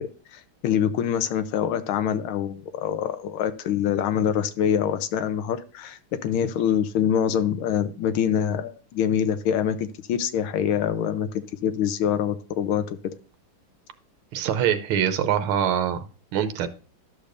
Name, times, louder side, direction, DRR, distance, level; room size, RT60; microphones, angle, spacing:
voice 1, 0.0-13.0, left 9 dB, 75° left, 11 dB, 1.5 m, -25 dB
voice 2, 14.3-16.0 16.3-16.7, right 9 dB, 85° right, 9 dB, 1.6 m, -24 dB
12.0 x 6.6 x 2.5 m, 0.37 s
omnidirectional pair, 2.3 m